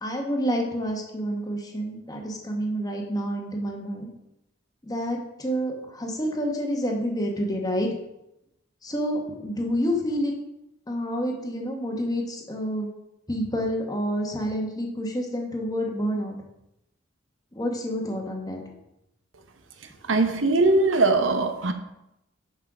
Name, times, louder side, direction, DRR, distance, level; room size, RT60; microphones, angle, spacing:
voice 1, 0.0-4.1 4.8-7.9 8.8-10.3 10.9-12.9 13.3-16.4 17.5-18.6, equal, 20° left, 1 dB, 1.2 m, -28 dB
voice 2, 20.1-21.7, right 2 dB, 85° right, 7 dB, 0.8 m, -21 dB
6.2 x 5.5 x 4.8 m, 0.86 s
head